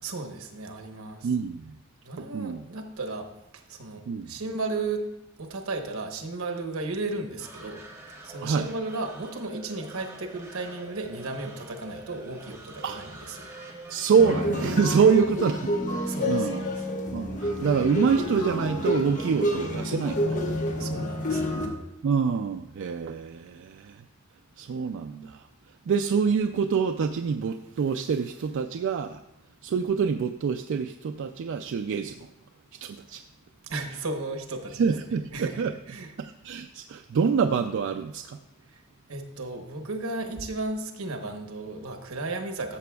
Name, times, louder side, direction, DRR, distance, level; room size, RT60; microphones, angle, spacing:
voice 1, 0.0-1.3 2.0-5.0 5.4-7.8 8.2-13.5 16.1-16.7 20.8-21.6 33.6-34.8 35.3-36.1 38.7-38.8 39.1-42.8, right 3 dB, 85° right, 4 dB, 1.0 m, -34 dB
voice 2, 1.2-1.7 2.3-2.6 4.1-4.3 8.4-8.7 12.8-13.0 13.9-16.0 16.3-16.7 17.1-20.6 22.0-24.0 24.6-25.5 25.9-29.2 29.6-32.3 32.8-33.2 34.8-35.7 36.2-38.4, right 6 dB, 60° right, 6 dB, 0.3 m, -26 dB
sound 1, 7.4-15.8, right 2 dB, 15° right, 1.2 m, -46 dB
sound 2, 14.2-21.7, equal, 35° left, 1.0 m, -29 dB
13.0 x 6.8 x 2.3 m, 0.92 s
head